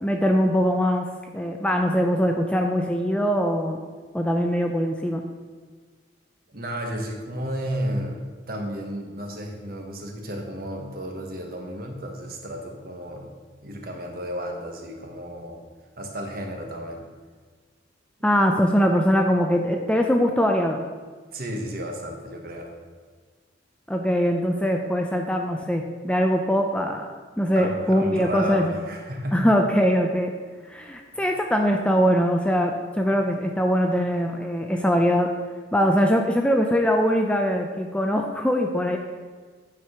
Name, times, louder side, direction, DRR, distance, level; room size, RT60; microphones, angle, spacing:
voice 1, 0.0-1.1 1.3-3.8 4.1-5.2 18.2-20.8 23.9-27.1 27.4-28.7 29.3-30.3 30.7-35.3 35.7-39.0, equal, 5° left, 3 dB, 0.5 m, -22 dB
voice 2, 6.5-13.3 13.6-15.6 16.0-17.1 21.3-22.7 27.5-29.5, equal, 50° right, 2 dB, 1.3 m, -33 dB
9.2 x 4.9 x 5.8 m, 1.5 s
head